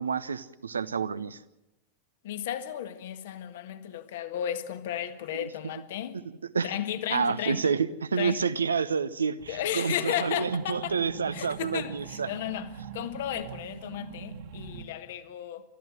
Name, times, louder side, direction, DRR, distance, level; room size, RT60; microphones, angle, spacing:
voice 1, 0.0-1.4 5.3-5.5 6.5-6.7 7.1-12.3, right 5 dB, 75° right, 0.8 m, -29 dB
voice 2, 2.2-6.2 6.6-7.7 8.2-8.4 9.5-11.0 11.3-15.6, left 11 dB, 55° left, 1.5 m, -34 dB
sound 1, 9.4-14.9, right 7 dB, 55° right, 2.0 m, -43 dB
29.5 x 13.5 x 7.8 m
figure-of-eight pair, 90°, 0 cm